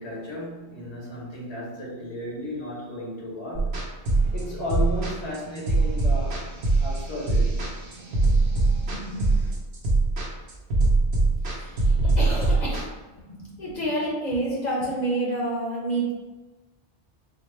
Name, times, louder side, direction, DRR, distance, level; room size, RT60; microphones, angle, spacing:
voice 1, 0.0-3.8 4.3-6.5 6.8-7.6, left 1 dB, 90° left, -4 dB, 1.3 m, -34 dB
sound 1, 3.5-12.8, right 3 dB, 80° right, 1.1 m, -22 dB
sound 2, 4.0-9.5, right 4 dB, 45° right, 0.3 m, -46 dB
voice 2, 8.9-9.4 11.5-12.9 13.3-16.1, right 1 dB, 45° left, -5 dB, 0.8 m, -29 dB
4.1 x 2.2 x 3.1 m, 1.2 s
omnidirectional pair, 1.1 m